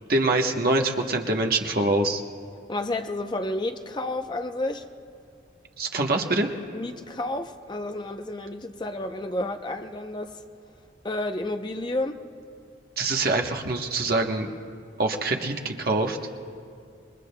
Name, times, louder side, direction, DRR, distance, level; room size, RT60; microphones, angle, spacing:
voice 1, 0.1-2.2 5.8-6.5 13.0-14.5 15.0-16.2, right 2 dB, 50° right, 1.0 m, -24 dB
voice 2, 2.7-4.9 6.7-10.4 11.0-12.2, left 2 dB, 25° left, 0.6 m, -31 dB
28.0 x 21.5 x 2.2 m
head